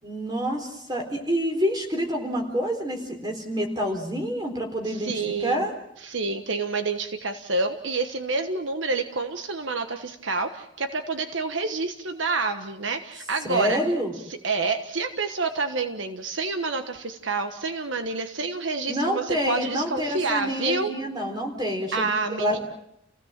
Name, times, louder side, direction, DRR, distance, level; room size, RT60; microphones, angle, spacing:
voice 1, 0.0-5.1 5.4-5.7 13.5-14.1 18.9-22.1 22.4-22.6, equal, 20° right, 3 dB, 4.0 m, -27 dB
voice 2, 4.8-5.7 6.0-13.8 14.3-20.9 21.9-22.6, right 3 dB, 70° right, 7 dB, 1.4 m, -28 dB
29.0 x 16.5 x 7.5 m, 0.77 s
head